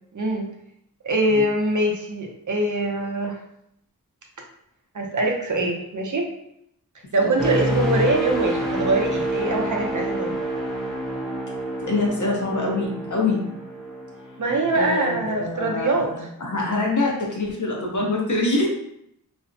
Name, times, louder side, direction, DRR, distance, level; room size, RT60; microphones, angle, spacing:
voice 1, 0.1-0.5 1.0-3.4 4.9-6.3 7.1-10.4 14.4-16.1, right 2 dB, 60° right, 1 dB, 0.5 m, -23 dB
sound 1, 7.4-15.2 15.7-15.9, right 1 dB, ahead, 0.5 m, -28 dB
voice 2, 11.8-13.4 14.7-18.7, left 2 dB, 55° left, -2 dB, 0.7 m, -25 dB
2.5 x 2.0 x 2.5 m, 0.74 s
wide cardioid pair, 50°, 35 cm